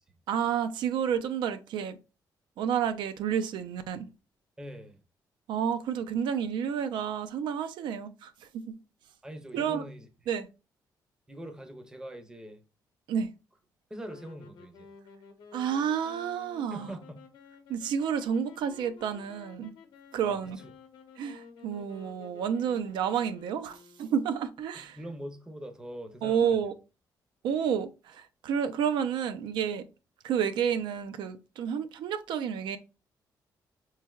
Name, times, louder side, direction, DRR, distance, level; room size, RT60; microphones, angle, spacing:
voice 1, 0.3-2.0 2.6-4.1 5.5-8.8 9.5-9.8 10.3-10.5 13.1-13.3 15.5-16.9 17.7-19.7 20.1-20.6 21.2-25.0 26.2-26.7 27.4-29.8 30.2-32.8, right 8 dB, 85° right, 0.4 m, -30 dB
voice 2, 4.6-5.0 9.2-10.1 11.3-12.6 13.9-14.9 16.7-17.2 20.2-20.4 24.7-26.7, equal, 10° right, 0.5 m, -43 dB
sound 1, 14.0-24.5, left 5 dB, 75° left, 0.7 m, -53 dB
4.4 x 3.1 x 2.3 m
cardioid pair, 150°, 8 cm